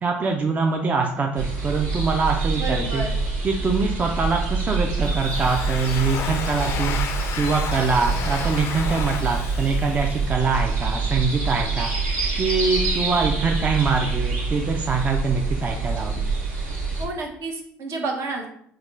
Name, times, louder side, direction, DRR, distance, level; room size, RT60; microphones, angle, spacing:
voice 1, 0.0-3.0 3.4-7.0 7.4-11.9 12.4-16.3, right 4 dB, 30° right, 2 dB, 0.4 m, -24 dB
sound 1, 1.4-17.1, right 4 dB, 75° right, 1.3 m, -26 dB
voice 2, 2.6-3.2 17.0-18.5, right 3 dB, 60° right, 1 dB, 0.8 m, -30 dB
Domestic sounds home sounds, 5.0-10.7, left 7 dB, 55° left, 0.3 m, -33 dB
3.6 x 2.2 x 3.2 m, 0.67 s
supercardioid pair, 90°, 5 cm